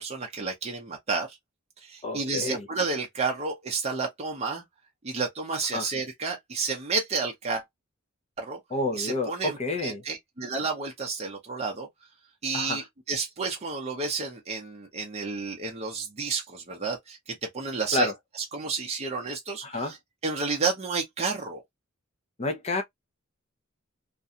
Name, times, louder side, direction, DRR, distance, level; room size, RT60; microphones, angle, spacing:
voice 1, 0.0-1.4 1.8-4.6 5.0-7.6 8.4-8.6 8.9-11.9 12.4-18.1 18.4-20.0 20.2-21.6, right 4 dB, 30° right, 0.6 m, -31 dB
voice 2, 2.0-2.7 5.7-5.9 8.7-10.0 12.5-12.8 17.9-18.1 19.6-19.9 22.4-22.8, left 2 dB, 30° left, 0.5 m, -29 dB
2.5 x 2.2 x 2.7 m
head